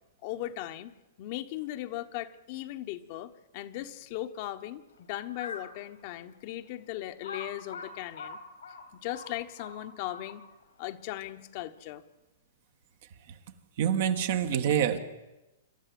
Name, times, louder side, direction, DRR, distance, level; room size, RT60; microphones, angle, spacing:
voice 1, 0.2-8.4 9.0-10.4 10.8-12.0, left 14 dB, 50° left, 8 dB, 1.2 m, -38 dB
Crow, 5.3-5.8 6.3-6.4 7.2-10.6, left 4 dB, 90° left, 3.4 m, -42 dB
voice 2, 13.8-15.0, right 9 dB, 60° right, 7 dB, 1.7 m, -26 dB
26.5 x 13.0 x 7.9 m, 1.0 s
hypercardioid pair, 120°, 0 cm